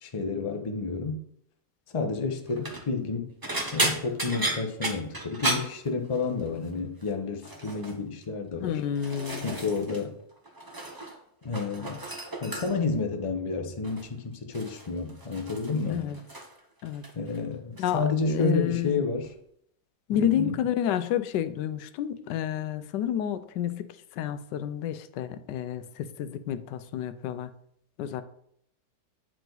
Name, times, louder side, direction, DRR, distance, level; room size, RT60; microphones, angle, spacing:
voice 1, 0.0-1.2 1.9-3.3 3.7-8.8 9.4-10.2 11.4-12.0 12.4-16.1 17.1-19.3 20.1-20.6, left 4 dB, 30° left, 4 dB, 0.5 m, -30 dB
sound 1, 2.5-2.9 3.4-6.5 6.7-7.1 7.4-8.0 8.6-10.0 10.3-11.2 11.4-13.0 13.8-14.1 14.5-16.6 16.9-17.4 17.8-18.0 19.2-19.3, right 2 dB, 30° right, 0.4 m, -34 dB
voice 2, 8.6-9.5 15.9-16.2 16.8-17.0 17.8-19.0 20.1-23.9 24.2-27.5 28.0-28.2, left 10 dB, 85° left, 12 dB, 1.2 m, -30 dB
8.9 x 4.8 x 3.9 m, 0.70 s
omnidirectional pair, 1.8 m